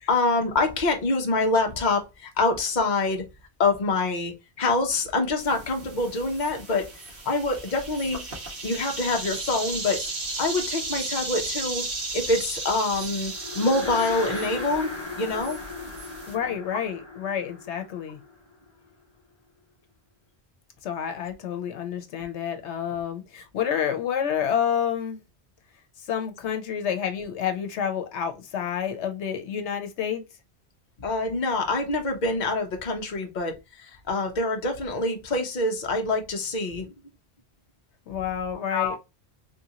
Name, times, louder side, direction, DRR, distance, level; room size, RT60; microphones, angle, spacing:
voice 1, 0.1-3.2 3.6-6.9 7.2-8.2 8.6-10.0 10.4-11.9 12.1-14.9 15.2-15.9 31.0-36.9 38.7-39.0, left 3 dB, 45° left, 0.9 m, -26 dB
sound 1, 5.4-16.4, right 2 dB, 55° right, 1.4 m, -35 dB
sound 2, 13.2-18.7, left 2 dB, 25° left, 1.1 m, -36 dB
voice 2, 16.3-18.2 20.8-25.2 26.0-30.2 38.1-39.0, left 8 dB, 85° left, 1.0 m, -29 dB
3.5 x 2.6 x 2.7 m
omnidirectional pair, 1.1 m